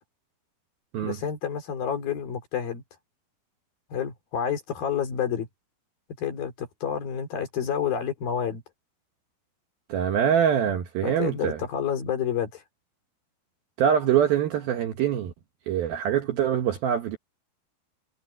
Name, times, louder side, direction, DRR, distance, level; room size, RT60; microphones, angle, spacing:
voice 1, 1.0-2.8 3.9-5.5 6.2-8.6 11.0-12.6, left 8 dB, 50° left, 4.6 m, -29 dB
voice 2, 9.9-11.6 13.8-15.3 15.7-17.2, right 9 dB, 65° right, 2.5 m, -24 dB
omnidirectional pair, 5.5 m